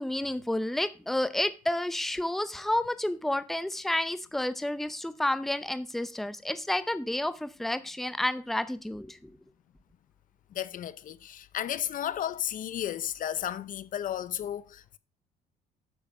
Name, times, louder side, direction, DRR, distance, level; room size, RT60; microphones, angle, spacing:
voice 1, 0.0-9.2, left 1 dB, ahead, 0.7 m, -30 dB
voice 2, 10.5-15.0, left 10 dB, 50° left, 0.7 m, -33 dB
8.5 x 7.7 x 4.9 m
cardioid pair, 110°, 17 cm